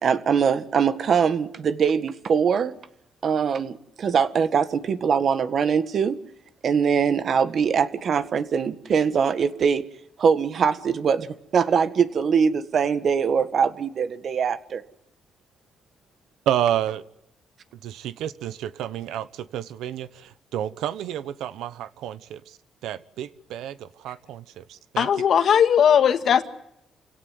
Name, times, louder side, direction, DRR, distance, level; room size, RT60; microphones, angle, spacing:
voice 1, 0.0-2.7 3.2-6.2 6.6-9.9 10.2-14.8, right 6 dB, 55° right, 12 dB, 1.7 m, -22 dB
voice 2, 16.5-17.0 17.8-22.6 22.8-25.1, right 11 dB, 85° right, 15 dB, 1.1 m, -30 dB
voice 3, 25.0-26.4, left 8 dB, 65° left, 9 dB, 1.9 m, -18 dB
28.5 x 17.0 x 9.5 m, 0.79 s
cardioid pair, 90°, 0 cm